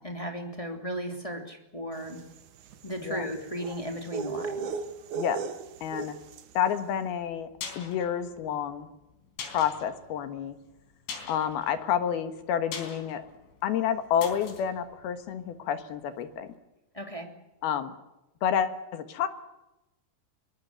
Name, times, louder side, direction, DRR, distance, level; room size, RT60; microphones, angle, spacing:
voice 1, 0.0-2.2 2.8-4.7 16.9-17.3, equal, 10° left, 3 dB, 1.7 m, -35 dB
sound 1, 2.1-6.6, right 5 dB, 70° right, 1.9 m, -37 dB
voice 2, 5.8-6.2 6.5-7.5 7.8-8.9 9.5-10.6 11.3-13.2 13.6-16.5 17.6-17.9 18.4-19.3, left 9 dB, 65° left, 10 dB, 3.0 m, -29 dB
sound 2, 7.2-16.1 16.3-16.4, left 6 dB, 90° left, 6.2 m, -44 dB
23.5 x 20.5 x 8.1 m, 0.93 s
omnidirectional pair, 5.3 m